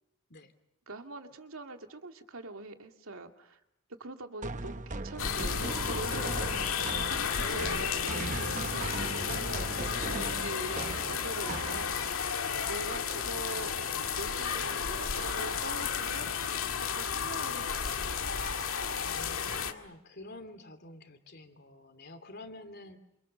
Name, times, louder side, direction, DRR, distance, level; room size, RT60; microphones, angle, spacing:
voice 1, 0.9-3.6 4.0-6.6 6.9-9.9 10.4-11.9 12.7-13.9 14.2-16.3 16.8-18.2, right 2 dB, 75° right, 5 dB, 2.3 m, -44 dB
sound 1, 4.4-12.2, right 2 dB, 35° right, 0.9 m, -38 dB
sound 2, 5.2-19.7, left 6 dB, 75° left, 2.0 m, -33 dB
voice 2, 19.0-23.0, left 2 dB, 50° left, 8 dB, 3.0 m, -49 dB
28.0 x 27.5 x 6.8 m, 0.82 s
head